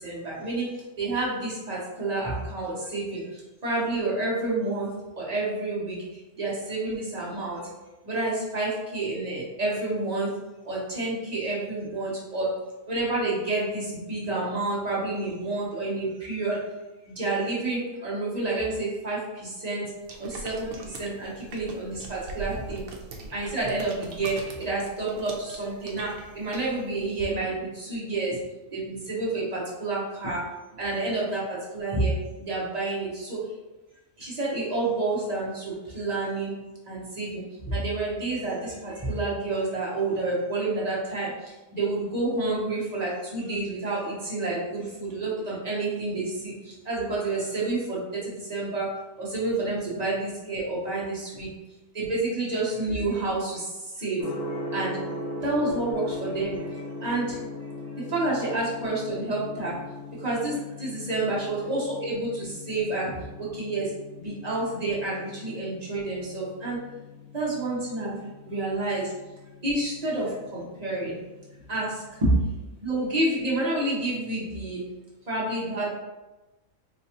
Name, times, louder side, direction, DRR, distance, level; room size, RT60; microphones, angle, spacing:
voice 1, 0.0-4.9 5.2-7.7 8.0-10.3 10.6-12.5 12.9-16.6 17.0-19.9 20.2-22.9 23.2-28.4 28.7-30.4 30.7-33.5 34.2-36.5 36.9-48.9 49.2-51.5 51.9-54.3 54.7-55.0 55.4-57.4 58.0-59.8 60.2-66.8 67.3-69.1 69.6-71.2 71.7-72.4 72.8-74.8 75.3-75.9, right 2 dB, 35° right, -7 dB, 0.8 m, -29 dB
sound 1, 20.0-27.2, right 3 dB, 80° right, 1.0 m, -42 dB
Gong, 54.2-72.1, left 2 dB, 75° left, 1.1 m, -40 dB
4.1 x 2.2 x 2.8 m, 1.1 s
omnidirectional pair, 1.4 m